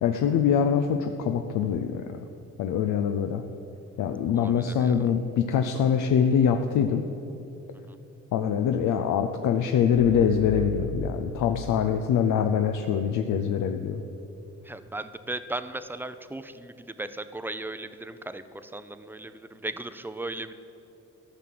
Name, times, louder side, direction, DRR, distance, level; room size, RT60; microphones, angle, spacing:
voice 1, 0.0-2.0 2.6-3.4 4.0-7.0 8.3-14.0, left 7 dB, 80° left, 6 dB, 0.6 m, -24 dB
voice 2, 4.3-5.1 7.9-8.0 14.6-20.5, right 2 dB, 5° right, 11 dB, 0.5 m, -37 dB
sound 1, 10.0-12.2, left 2 dB, 60° left, 2.3 m, -36 dB
13.0 x 5.9 x 7.7 m, 2.9 s
cardioid pair, 90°, 30 cm